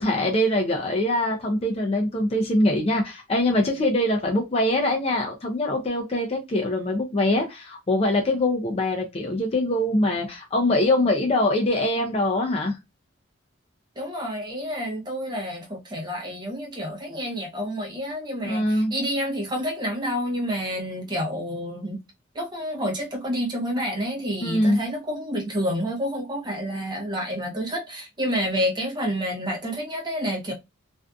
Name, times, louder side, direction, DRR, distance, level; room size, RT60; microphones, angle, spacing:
voice 1, 0.0-12.8 18.4-18.9 24.4-24.8, left 1 dB, 30° left, 0.4 m, -23 dB
voice 2, 14.0-22.0 22.3-30.5, equal, 20° right, 0.7 m, -29 dB
2.5 x 2.4 x 2.3 m
head